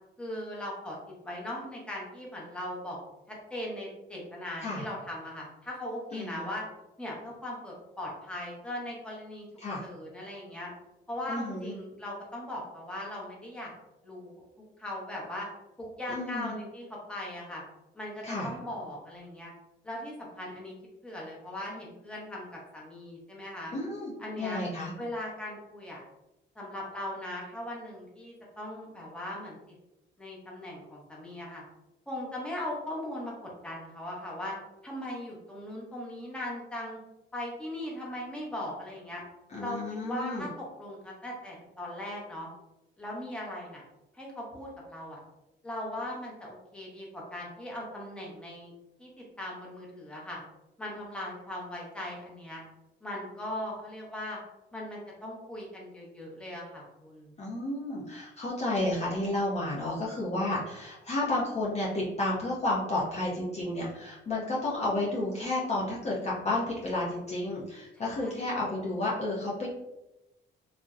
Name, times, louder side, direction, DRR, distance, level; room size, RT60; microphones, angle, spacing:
voice 1, 0.2-1.0 1.2-3.0 3.3-6.6 7.0-9.5 9.8-10.7 11.1-13.7 14.0-14.4 14.8-15.5 15.8-17.6 17.9-19.5 19.8-20.7 21.0-23.7 24.2-24.6 25.0-26.0 26.6-29.6 30.2-31.6 32.1-33.3 33.6-34.6 34.8-37.0 37.3-39.2 39.6-39.8 40.0-42.5 43.0-43.8 44.1-45.2 45.6-48.7 49.0-50.4 50.8-52.6 53.0-54.4 54.7-57.3 67.9-68.5, left 1 dB, 5° left, -4 dB, 0.7 m, -39 dB
voice 2, 6.1-6.5 9.6-9.9 11.3-11.7 16.1-16.5 18.2-18.5 23.7-24.9 39.5-40.5 57.4-69.7, left 2 dB, 35° left, -5 dB, 0.5 m, -31 dB
2.5 x 2.0 x 2.3 m, 0.96 s
cardioid pair, 90°, 20 cm